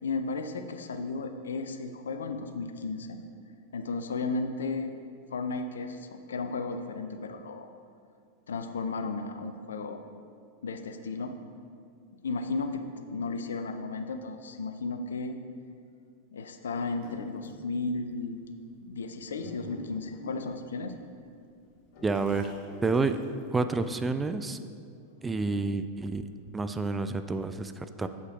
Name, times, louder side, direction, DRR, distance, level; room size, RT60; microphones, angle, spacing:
voice 1, 0.0-3.2 3.7-4.9 5.3-7.7 8.5-10.0 10.6-11.3 12.2-12.8 13.1-15.4 16.3-18.4 18.8-20.9, left 3 dB, 65° left, 7 dB, 0.5 m, -34 dB
sound 1, 17.0-17.7 18.4-18.5 19.1-21.2 21.7-23.8, left 5 dB, 45° left, 1.2 m, -46 dB
voice 2, 22.0-22.5 22.8-23.2 23.5-24.6 25.2-26.2 26.5-28.1, right 3 dB, 15° right, 9 dB, 0.3 m, -29 dB
8.0 x 5.4 x 4.6 m, 2.3 s
figure-of-eight pair, 90°, 0 cm